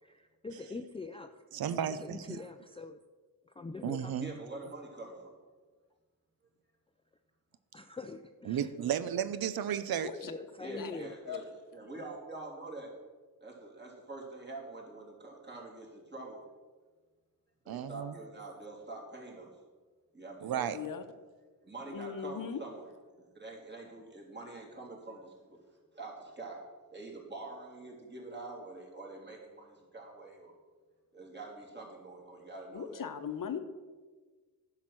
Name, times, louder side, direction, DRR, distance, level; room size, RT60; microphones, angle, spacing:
voice 1, 0.0-1.4 1.9-3.0 3.4-4.3 7.7-8.7 10.2-11.2, left 3 dB, 15° left, 7 dB, 0.4 m, -44 dB
voice 2, 1.5-2.3 3.8-4.3 8.5-10.1 17.7-18.1 20.4-20.8, right 9 dB, 90° right, 13 dB, 0.6 m, -33 dB
voice 3, 4.2-5.3 10.6-11.4 11.7-12.9 13.4-16.4 17.6-19.5 20.1-20.7 21.6-22.8 23.2-25.6 25.9-26.6 26.9-30.5 31.1-33.0, right 2 dB, 30° right, -2 dB, 3.0 m, -45 dB
voice 4, 20.7-21.0 21.9-22.6 32.7-33.6, left 7 dB, 65° left, 9 dB, 0.9 m, -38 dB
10.5 x 5.8 x 7.6 m, 1.4 s
wide cardioid pair, 105°, 35 cm